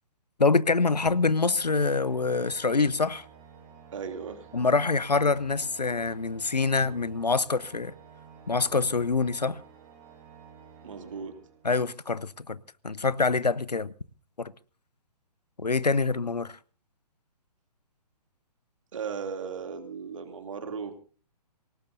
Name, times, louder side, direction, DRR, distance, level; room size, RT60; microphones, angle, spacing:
voice 1, 0.4-3.2 4.5-7.9 8.5-9.6 11.6-12.6 12.8-13.9 14.4-14.5 15.6-16.6, left 4 dB, 80° left, 0.8 m, -25 dB
Organ, 1.1-12.0, right 7 dB, 25° right, 4.8 m, -52 dB
voice 2, 3.9-4.5 10.8-11.4 18.9-21.0, right 6 dB, 50° right, 2.8 m, -36 dB
27.0 x 18.0 x 2.7 m
figure-of-eight pair, 130°, 21 cm